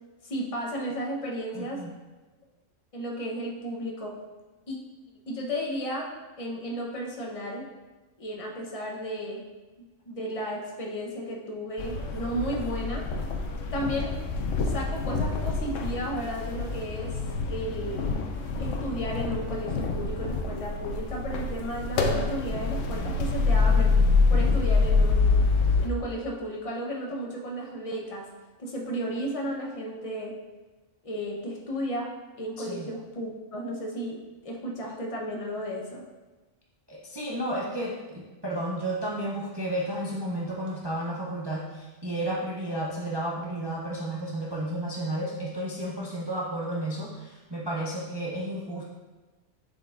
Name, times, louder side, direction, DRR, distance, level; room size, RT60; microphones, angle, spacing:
voice 1, 0.2-1.8 2.9-4.1 4.7-4.8 5.3-6.1 6.4-7.7 8.2-9.4 10.1-13.1 13.7-14.2 14.6-17.2 17.5-18.1 18.6-23.9 24.3-25.4 25.8-28.3 28.6-30.3 31.0-32.1 32.3-36.0, equal, 30° left, -1 dB, 0.8 m, -33 dB
voice 2, 1.5-1.9 32.6-32.9 36.9-48.8, right 1 dB, 30° right, -4 dB, 0.5 m, -32 dB
sound 1, 11.8-25.9, left 4 dB, 75° left, 1.0 m, -26 dB
7.4 x 5.2 x 2.5 m, 1.2 s
omnidirectional pair, 1.4 m